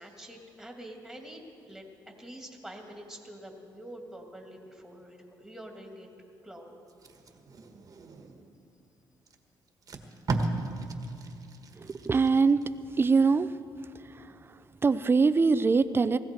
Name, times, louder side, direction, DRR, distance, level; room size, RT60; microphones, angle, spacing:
voice 1, 0.0-1.9 2.2-6.1 6.4-6.8, right 1 dB, ahead, 1 dB, 2.4 m, -46 dB
Packing tape duct tape, 6.9-8.6 9.3-9.4 9.7-12.7 13.1-13.3, right 3 dB, 45° right, 1.5 m, -36 dB
voice 2, 11.8-12.6 12.9-13.6 13.9-16.2, right 4 dB, 25° right, 13 dB, 0.5 m, -24 dB
19.5 x 15.5 x 4.5 m, 2.8 s
cardioid pair, 90°, 9 cm